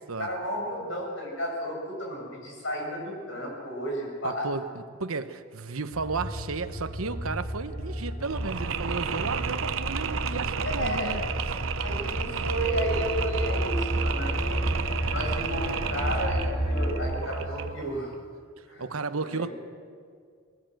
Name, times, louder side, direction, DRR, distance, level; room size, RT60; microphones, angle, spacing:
voice 1, 0.2-4.5 10.7-11.1 11.8-14.7 15.1-18.1 18.7-18.9 19.2-19.5, equal, 65° left, 7.2 m, -33 dB
voice 2, 4.2-11.2 18.8-19.5, right 4 dB, 90° right, 1.1 m, -33 dB
sound 1, 5.9-17.1, equal, 40° left, 4.2 m, -32 dB
Mechanisms, 8.2-18.0, right 6 dB, 70° right, 0.8 m, -33 dB
20.5 x 19.5 x 7.9 m
head